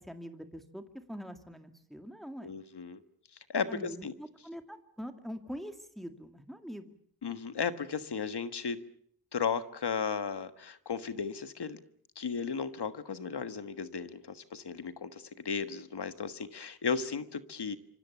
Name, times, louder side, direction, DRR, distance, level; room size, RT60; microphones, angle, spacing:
voice 1, 0.0-2.5 3.7-6.9, equal, ahead, 6 dB, 2.3 m, -44 dB
voice 2, 2.4-3.0 3.5-4.1 7.2-8.8 9.3-11.8 12.1-17.8, left 6 dB, 90° left, 11 dB, 1.5 m, -35 dB
26.5 x 24.5 x 7.1 m, 0.65 s
wide cardioid pair, 75°, 39 cm